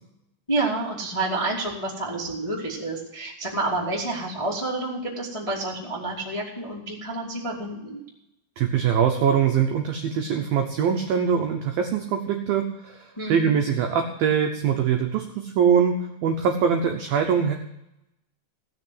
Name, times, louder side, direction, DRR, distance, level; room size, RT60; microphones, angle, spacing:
voice 1, 0.5-8.0 13.2-13.5, right 2 dB, 25° left, -4 dB, 0.7 m, -29 dB
voice 2, 8.6-17.5, right 7 dB, 80° right, 3 dB, 2.1 m, -23 dB
16.5 x 6.5 x 7.9 m, 0.86 s
omnidirectional pair, 5.5 m